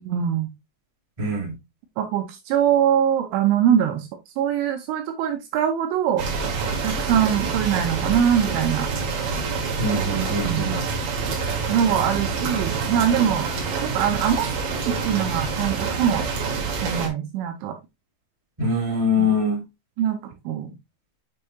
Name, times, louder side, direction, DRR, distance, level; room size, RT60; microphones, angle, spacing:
voice 1, 0.0-0.5 2.0-4.1 4.4-6.3 6.8-8.9 10.4-10.7 11.7-13.5 13.9-16.3 16.7-17.8 20.0-20.7, right 9 dB, 85° right, 2.7 m, -23 dB
voice 2, 1.2-1.5 9.8-10.8 18.6-19.6, left 2 dB, 35° right, 0.5 m, -23 dB
sound 1, 6.2-17.1, right 4 dB, 60° right, 2.6 m, -27 dB
7.6 x 5.4 x 2.7 m
omnidirectional pair, 5.9 m